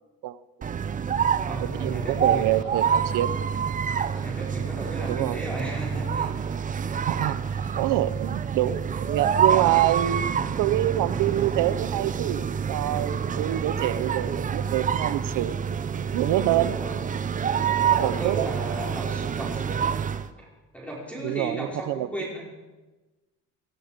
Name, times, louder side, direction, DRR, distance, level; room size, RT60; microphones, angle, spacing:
voice 1, 0.2-1.0 1.6-3.3 5.1-5.4 7.1-7.4 7.8-15.6 16.1-16.8 18.0-18.5 21.2-22.1, right 14 dB, 75° right, 15 dB, 0.7 m, -26 dB
sound 1, 0.6-20.3, right 7 dB, 25° right, 0.6 m, -27 dB
voice 2, 1.4-2.5 4.2-6.5 16.6-17.0 17.6-19.9 20.4-20.5 20.7-22.4, right 1 dB, 5° left, -3 dB, 5.1 m, -35 dB
Laughter / Cough, 2.2-5.6 5.8-6.7 7.4-8.5 9.1-10.3 11.0-12.0 12.6-13.2 13.6-14.9, left 1 dB, 20° left, 6.5 m, -54 dB
19.5 x 13.5 x 5.1 m, 1.2 s
cardioid pair, 140°, 31 cm